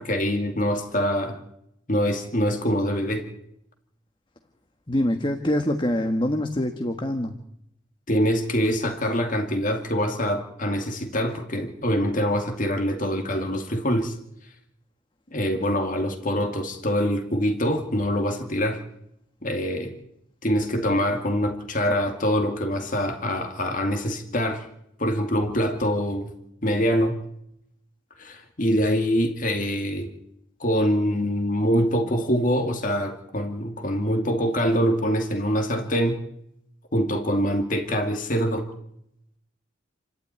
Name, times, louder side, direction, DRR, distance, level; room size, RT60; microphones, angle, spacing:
voice 1, 0.0-1.4 1.9-3.2 8.1-14.2 15.3-18.8 19.4-19.9 20.4-24.7 25.0-26.3 26.6-27.2 28.2-30.1 30.6-36.2 36.9-38.7, equal, 45° left, 5 dB, 2.4 m, -24 dB
voice 2, 4.9-7.3, left 1 dB, 25° left, 6 dB, 1.5 m, -24 dB
28.5 x 12.5 x 9.6 m, 0.78 s
head